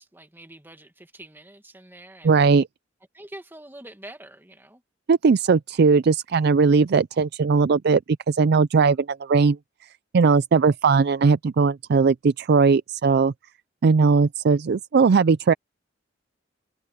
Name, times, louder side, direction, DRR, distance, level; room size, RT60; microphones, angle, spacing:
voice 1, 0.0-2.4 3.1-4.8, right 1 dB, 10° right, 1.9 m, -45 dB
voice 2, 2.2-2.7 5.1-8.0 8.3-9.6 10.1-13.3 13.8-15.5, right 5 dB, 55° right, 0.4 m, -19 dB
head